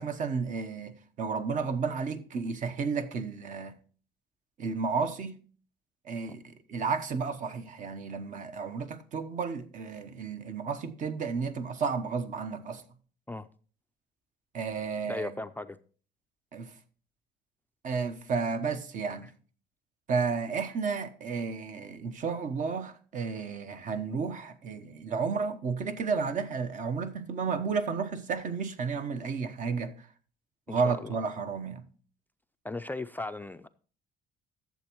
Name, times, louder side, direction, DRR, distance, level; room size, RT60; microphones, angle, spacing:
voice 1, 0.0-3.8 4.6-5.4 6.0-12.8 14.5-15.3 16.5-16.7 17.8-19.3 20.1-30.1 30.7-31.8, right 5 dB, 50° right, 0.9 m, -32 dB
voice 2, 15.1-15.8 19.2-19.3 30.7-31.2 32.6-33.7, left 2 dB, 10° left, 0.3 m, -37 dB
12.0 x 7.2 x 3.0 m
cardioid pair, 110°, 17 cm